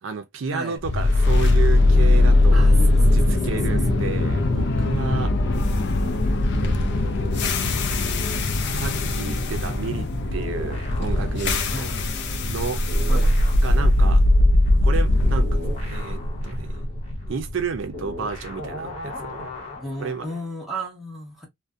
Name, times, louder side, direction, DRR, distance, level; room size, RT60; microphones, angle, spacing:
voice 1, 0.0-2.7 3.0-5.3 6.6-7.8 8.7-10.1 10.3-11.9 12.5-12.8 13.6-14.2 14.8-16.2 16.4-16.7 17.3-19.5 20.0-20.3, right 5 dB, 75° right, 0.5 m, -31 dB
sound 1, 0.8-18.9, left 2 dB, 60° left, 0.4 m, -20 dB
voice 2, 2.5-3.0 3.3-4.0 11.7-12.1 13.1-13.4 19.8-21.5, right 1 dB, ahead, 1.1 m, -34 dB
sound 2, 10.4-12.6 12.9-20.5, left 2 dB, 30° left, 1.1 m, -38 dB
2.5 x 2.1 x 2.3 m
head